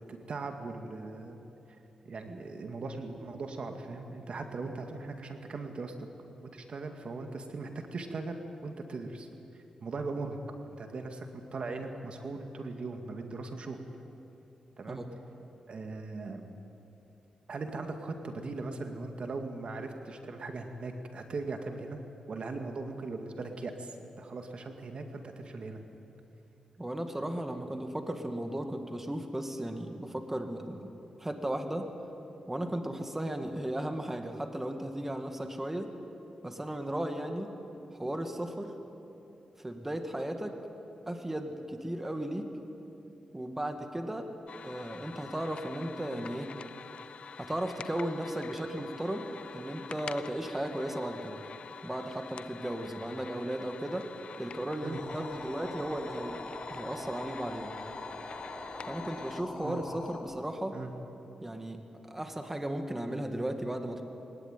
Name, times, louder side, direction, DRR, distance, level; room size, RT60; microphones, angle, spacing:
voice 1, 0.0-1.4 2.0-5.9 6.5-9.3 9.8-10.4 10.7-13.8 14.8-15.0 15.7-16.4 17.5-22.0 22.3-25.8 54.8-55.0 59.6-59.8 60.7-60.9, right 3 dB, 60° right, 5 dB, 2.2 m, -39 dB
voice 2, 26.8-30.9 31.2-31.9 32.5-35.9 36.4-37.5 38.0-38.7 39.6-40.6 41.1-42.5 43.3-44.3 44.6-46.5 47.3-51.4 51.8-54.1 54.4-56.4 56.7-57.7 58.9-60.8 61.4-64.0, right 1 dB, 15° right, 5 dB, 2.1 m, -35 dB
sound 1, 44.5-59.4, left 6 dB, 65° left, 0.6 m, -47 dB
sound 2, 54.9-60.2, left 2 dB, 35° left, 5.1 m, -43 dB
22.5 x 19.0 x 9.3 m, 2.9 s
cardioid pair, 80°, 2 cm